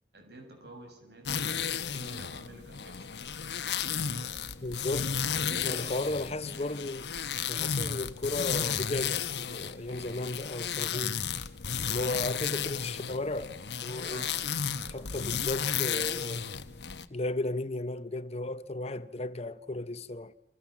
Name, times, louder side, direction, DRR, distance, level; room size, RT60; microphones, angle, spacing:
voice 1, 0.1-3.3 3.8-4.4 5.4-6.0 14.0-14.5 14.7-15.2, right 1 dB, 70° right, 7.2 m, -49 dB
sound 1, 1.2-17.1, left 7 dB, 75° left, 1.2 m, -33 dB
voice 2, 4.6-5.3 5.6-7.1 7.5-11.2 11.9-13.5 13.8-14.3 14.9-16.5 17.1-20.3, left 2 dB, 35° left, 1.1 m, -35 dB
29.5 x 26.0 x 7.4 m
head